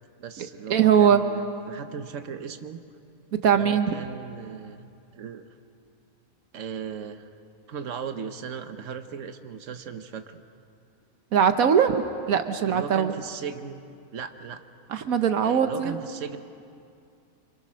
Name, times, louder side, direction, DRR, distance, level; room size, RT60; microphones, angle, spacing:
voice 1, 0.2-2.8 3.5-4.8 5.1-5.4 6.5-7.3 7.7-10.4 12.6-13.8 14.1-14.6 15.4-16.4, right 7 dB, 65° right, 8 dB, 1.4 m, -37 dB
voice 2, 0.7-1.2 3.4-3.9 11.3-13.2 14.9-15.9, right 8 dB, 85° right, 8 dB, 1.4 m, -21 dB
27.5 x 26.5 x 6.3 m, 2.5 s
omnidirectional pair, 1.4 m